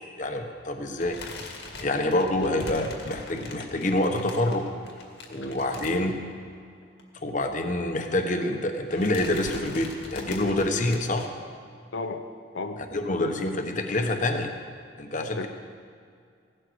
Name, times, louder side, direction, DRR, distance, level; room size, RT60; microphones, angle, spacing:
voice 1, 0.2-1.2 1.8-4.6 5.3-6.2 7.2-11.3 12.8-14.5 15.0-15.5, left 1 dB, 45° left, 5 dB, 1.2 m, -27 dB
sound 1, 1.0-6.6 6.8-7.0 7.3-7.4 8.3-8.6 8.9-11.3, left 2 dB, 70° left, 2.1 m, -42 dB
voice 2, 11.9-12.2 12.5-12.8 15.4-15.5, left 3 dB, 90° left, 6 dB, 0.8 m, -33 dB
16.5 x 12.5 x 4.8 m, 2.2 s
head